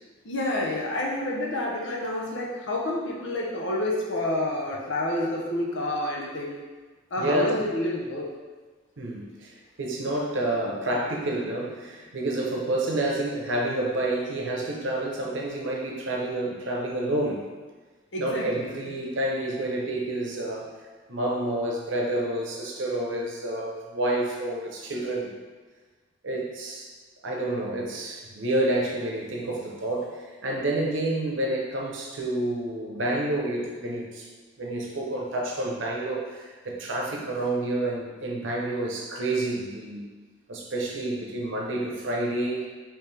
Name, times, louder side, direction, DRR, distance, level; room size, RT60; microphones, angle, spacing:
voice 1, 0.2-6.6 7.1-8.3 18.1-18.8, left 1 dB, 75° left, -2 dB, 0.8 m, -29 dB
voice 2, 7.2-7.5 9.0-17.4 18.2-20.7 21.1-25.3 26.2-26.9 27.2-34.3 34.6-40.1 40.5-42.7, right 1 dB, 80° right, -1 dB, 0.8 m, -29 dB
4.6 x 3.2 x 3.3 m, 1.4 s
head